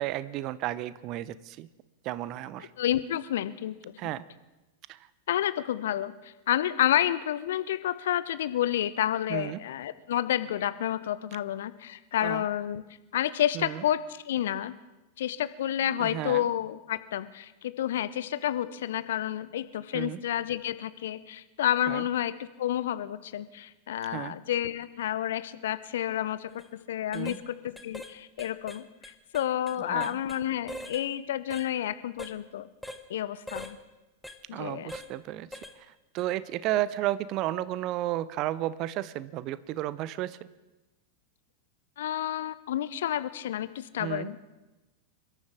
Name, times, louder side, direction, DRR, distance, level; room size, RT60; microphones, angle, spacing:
voice 1, 0.0-1.7 2.0-2.7 4.0-4.2 4.9-5.1 9.3-9.6 12.2-12.5 13.5-13.8 16.0-16.4 19.9-20.2 21.9-22.0 24.0-24.4 27.1-27.4 29.9-30.2 34.5-40.4 44.0-44.3, right 14 dB, 40° right, 17 dB, 0.6 m, -33 dB
voice 2, 2.8-3.9 5.3-12.8 13.1-14.7 15.2-26.5 26.9-32.7 33.1-33.8 34.5-34.9 42.0-44.4, left 11 dB, 60° left, 14 dB, 0.6 m, -30 dB
sound 1, 26.5-26.7 27.1-27.4 27.8-28.1 28.4-30.4 30.7-31.0 31.5-31.7 32.2-32.4 32.8-33.0 33.5-33.7 34.2-34.4 34.9-35.1 35.5-35.8 36.2-36.3, left 1 dB, 5° left, 1.0 m, -42 dB
27.5 x 13.5 x 3.7 m, 1.0 s
figure-of-eight pair, 90°, 0 cm